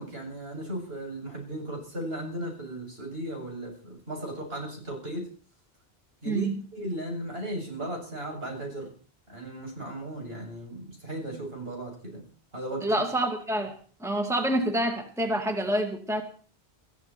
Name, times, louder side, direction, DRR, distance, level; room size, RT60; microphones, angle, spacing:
voice 1, 0.0-5.3 6.2-8.9 9.3-12.2 12.5-13.0, right 1 dB, 65° right, 0 dB, 7.9 m, -36 dB
voice 2, 12.8-13.7 14.0-16.2, right 1 dB, 5° right, 4 dB, 2.1 m, -27 dB
22.0 x 14.5 x 4.5 m, 0.43 s
omnidirectional pair, 1.1 m